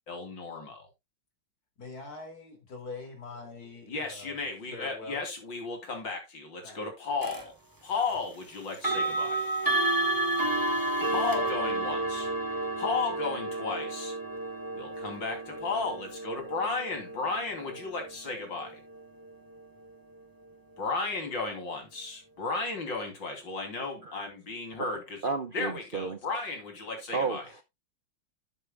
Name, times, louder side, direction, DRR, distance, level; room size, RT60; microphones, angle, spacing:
voice 1, 0.1-0.9 3.9-7.5 7.8-9.4 11.1-12.3 12.8-14.2 14.7-18.8 20.8-25.2 25.5-27.4, left 4 dB, 65° left, 3.6 m, -34 dB
voice 2, 1.8-4.4 4.7-5.2 6.6-6.9, left 3 dB, 45° left, 3.1 m, -43 dB
sound 1, 7.2-7.4 8.7-19.6, right 2 dB, 10° right, 1.2 m, -31 dB
voice 3, 25.2-26.2 27.1-27.6, right 4 dB, 80° right, 0.4 m, -32 dB
11.5 x 8.8 x 2.3 m
omnidirectional pair, 2.2 m